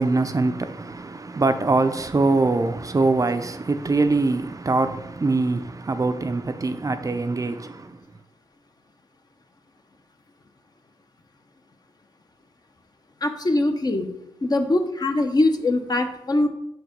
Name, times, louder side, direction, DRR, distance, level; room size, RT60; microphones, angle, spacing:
voice 1, 0.0-8.0, right 3 dB, 35° right, 0.5 m, -23 dB
voice 2, 13.2-14.1 14.4-16.5, left 2 dB, 40° left, 0.8 m, -22 dB
5.2 x 4.7 x 5.1 m
cardioid pair, 60°, 10 cm